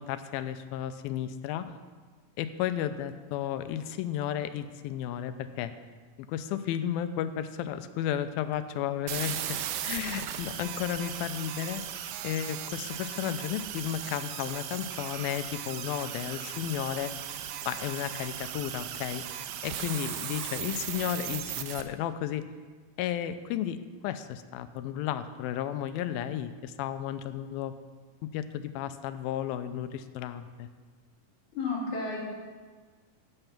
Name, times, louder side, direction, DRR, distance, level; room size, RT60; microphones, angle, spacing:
voice 1, 0.0-1.7 2.4-5.7 6.3-9.4 9.8-11.8 12.2-17.1 17.7-19.2 19.6-22.4 23.0-23.8 24.0-27.7 28.2-30.7, left 10 dB, 90° left, 10 dB, 2.4 m, -33 dB
sound 1, 9.1-21.8, right 10 dB, 85° right, 2.4 m, -37 dB
voice 2, 31.5-32.2, left 3 dB, 55° left, -6 dB, 4.5 m, -31 dB
12.5 x 8.0 x 5.9 m, 1.5 s
omnidirectional pair, 4.2 m